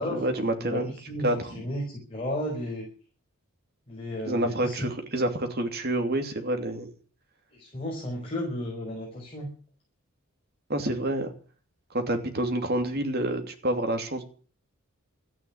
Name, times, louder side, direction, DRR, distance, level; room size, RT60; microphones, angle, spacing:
voice 1, 0.0-0.9 1.2-1.4 4.3-6.9 10.7-11.3 11.9-14.2, right 1 dB, 45° right, 6 dB, 2.8 m, -28 dB
voice 2, 1.1-2.9 3.9-4.9 7.5-9.5, left 1 dB, 25° left, -3 dB, 5.4 m, -33 dB
14.0 x 9.9 x 9.8 m, 0.41 s
head